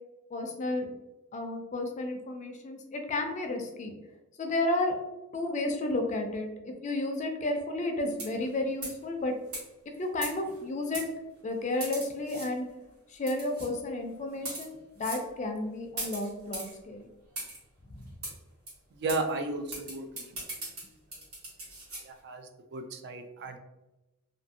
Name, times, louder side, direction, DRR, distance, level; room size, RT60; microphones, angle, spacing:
voice 1, 0.3-0.9 1.3-3.9 4.4-5.0 5.3-9.3 10.0-11.0 11.4-12.7 13.1-17.1 17.9-18.1, left 2 dB, 35° left, 4 dB, 0.4 m, -32 dB
sound 1, 8.1-8.5 8.8-9.0 9.5-9.6 10.2-10.6 10.9-11.1 11.8-12.5 13.3-13.7 14.3-14.7 15.0-15.2 16.0-16.7 17.4-17.6 18.2-18.3 18.7-18.8 19.1-19.2 19.7-22.0, right 2 dB, 80° right, 1.3 m, -39 dB
voice 2, 18.9-20.4 22.0-23.6, right 2 dB, 50° right, 6 dB, 0.3 m, -34 dB
2.6 x 2.5 x 2.6 m, 1.0 s
head